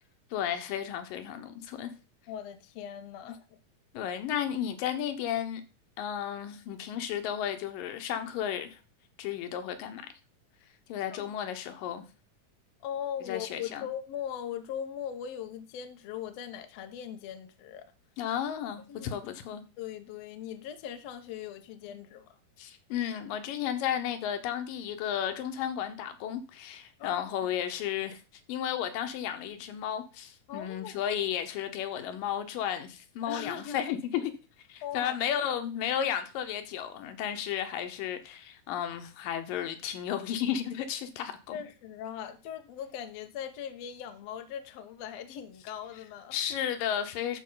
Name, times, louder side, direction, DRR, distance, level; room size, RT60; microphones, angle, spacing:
voice 1, 0.3-1.9 3.9-5.6 6.0-8.8 9.2-10.0 10.9-12.0 13.3-13.9 18.2-19.6 22.6-28.2 28.5-34.2 34.7-41.6 46.3-47.4, left 9 dB, 90° left, 2.7 m, -33 dB
voice 2, 2.3-3.4 11.0-11.4 12.8-17.9 18.9-19.1 19.8-22.4 27.0-27.2 30.5-31.0 33.3-33.8 34.8-35.1 41.5-46.4, left 9 dB, 65° left, 1.8 m, -39 dB
13.0 x 4.7 x 3.8 m
omnidirectional pair, 3.8 m